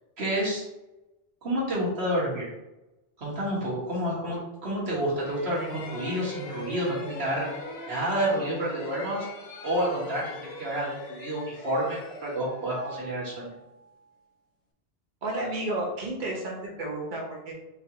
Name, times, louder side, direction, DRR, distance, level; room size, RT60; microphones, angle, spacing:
voice 1, 0.2-0.6 1.4-2.5 3.2-7.5 7.9-9.3 9.6-13.5, right 1 dB, 90° right, -6 dB, 1.7 m, -29 dB
sound 1, 5.2-13.9, left 2 dB, 80° left, 0.9 m, -41 dB
voice 2, 15.2-17.5, right 2 dB, 50° right, -2 dB, 1.1 m, -32 dB
5.0 x 2.5 x 2.9 m, 0.97 s
omnidirectional pair, 1.1 m